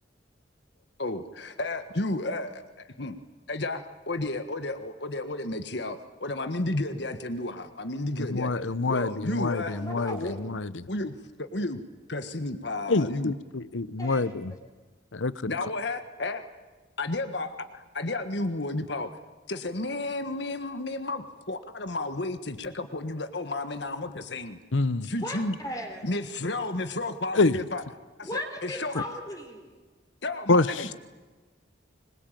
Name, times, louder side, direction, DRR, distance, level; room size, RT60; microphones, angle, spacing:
voice 1, 1.0-2.6 3.0-3.2 3.5-8.6 8.9-9.8 10.0-10.4 10.9-11.8 12.1-13.3 15.5-16.5 17.0-19.1 19.5-24.6 25.0-25.6 26.0-27.8 28.2-28.9 30.2-30.9, left 2 dB, 60° left, 9 dB, 1.6 m, -32 dB
voice 2, 8.2-10.9 12.9-14.5 15.1-15.5 24.7-25.1 27.3-27.6 30.5-30.7, left 3 dB, 85° left, 17 dB, 0.9 m, -26 dB
voice 3, 9.3-10.6 14.0-14.4 25.1-26.1 28.2-29.8, equal, 20° left, 3 dB, 3.6 m, -38 dB
25.5 x 22.0 x 9.2 m, 1.3 s
head